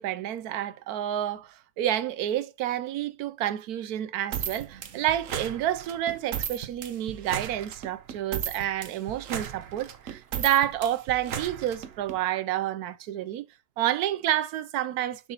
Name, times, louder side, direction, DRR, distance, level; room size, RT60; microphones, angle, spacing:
voice 1, 0.0-13.5 13.8-15.3, right 12 dB, 85° right, 1.1 m, -29 dB
sound 1, 4.3-12.2, right 8 dB, 60° right, 1.2 m, -35 dB
7.3 x 6.3 x 2.9 m
omnidirectional pair, 1.6 m